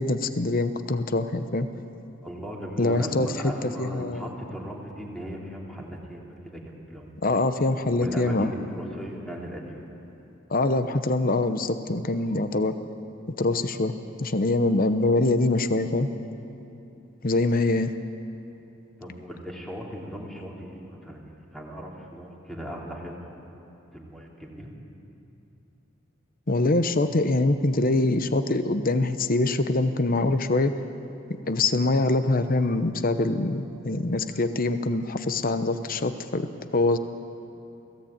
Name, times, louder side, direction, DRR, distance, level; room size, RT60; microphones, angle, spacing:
voice 1, 0.0-1.7 2.8-3.3 3.6-4.3 7.2-8.5 10.5-12.7 13.4-13.9 14.2-16.1 17.2-17.9 26.5-30.7 31.5-37.0, left 2 dB, 45° left, 10 dB, 0.9 m, -24 dB
voice 2, 2.2-7.1 7.9-9.9 19.0-23.3 23.9-24.7, equal, ahead, -2 dB, 3.1 m, -37 dB
24.0 x 16.5 x 8.8 m, 2.9 s
head